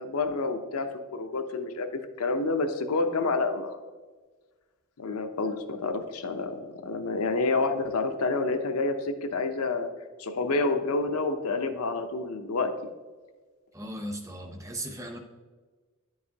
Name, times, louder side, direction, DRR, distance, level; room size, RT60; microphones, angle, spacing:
voice 1, 0.0-3.8 5.0-9.9 10.2-12.7, left 3 dB, 90° left, 7 dB, 0.6 m, -28 dB
voice 2, 13.7-15.2, right 1 dB, 15° right, 5 dB, 0.6 m, -37 dB
10.0 x 4.7 x 2.8 m, 1.4 s
head